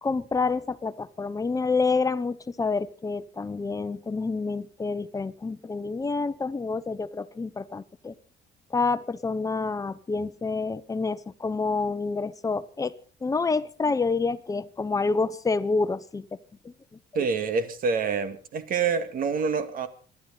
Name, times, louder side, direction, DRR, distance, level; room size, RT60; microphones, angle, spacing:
voice 1, 0.0-8.1 8.7-12.9 13.2-16.3 16.6-16.7 17.2-17.3, left 4 dB, 20° left, 13 dB, 1.0 m, -28 dB
voice 2, 17.1-19.9, right 5 dB, 50° right, 9 dB, 2.2 m, -27 dB
26.5 x 11.5 x 4.1 m, 0.39 s
cardioid pair, 145°, 18 cm